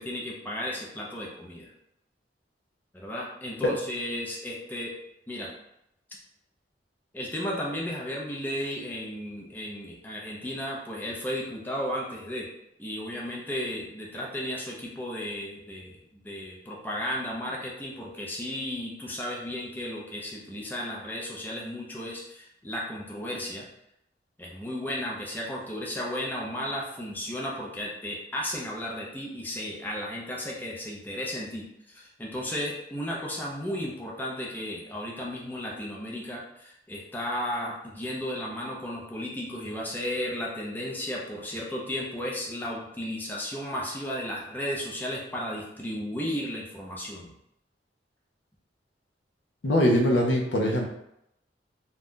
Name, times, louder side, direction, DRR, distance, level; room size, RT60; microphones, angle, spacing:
voice 1, 0.0-1.7 2.9-4.9 5.3-5.5 7.1-12.5 12.8-16.0 16.2-23.7 24.4-47.3, left 1 dB, 10° left, -3 dB, 0.5 m, -34 dB
voice 2, 49.6-50.9, equal, 80° left, 0 dB, 0.6 m, -22 dB
2.6 x 2.3 x 3.5 m, 0.80 s
head